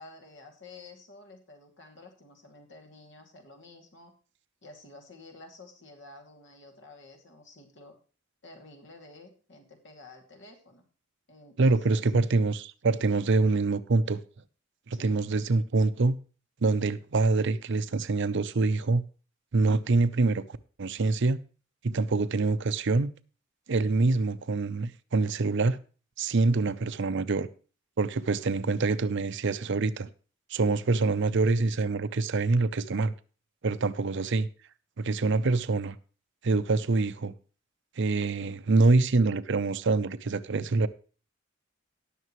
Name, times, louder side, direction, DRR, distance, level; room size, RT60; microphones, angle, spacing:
voice 1, 0.0-4.1 4.6-8.0 8.4-10.8 11.3-12.1 14.9-15.1, left 2 dB, 65° left, 2.5 m, -51 dB
voice 2, 11.6-14.2 14.9-16.2 16.6-19.0 19.5-20.4 20.8-21.4 21.8-23.1 23.7-25.8 26.2-27.5 28.0-30.1 30.5-33.1 33.6-34.5 35.0-36.0 36.4-37.3 38.0-40.9, right 3 dB, 65° right, 0.6 m, -25 dB
18.5 x 6.7 x 3.1 m
head